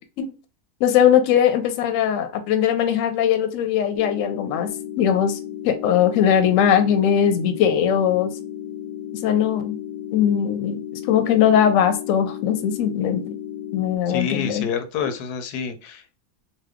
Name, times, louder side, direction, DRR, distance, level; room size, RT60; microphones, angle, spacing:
voice 1, 0.8-4.7 5.0-5.4 5.6-8.3 9.2-9.8 10.1-10.8 11.1-13.4 13.7-14.6, left 9 dB, 70° left, 7 dB, 0.8 m, -20 dB
sound 1, 3.9-14.0, left 10 dB, 35° left, 0.3 m, -34 dB
voice 2, 14.1-16.2, left 6 dB, 90° left, 8 dB, 1.1 m, -28 dB
2.8 x 2.1 x 3.4 m, 0.32 s
omnidirectional pair, 1.6 m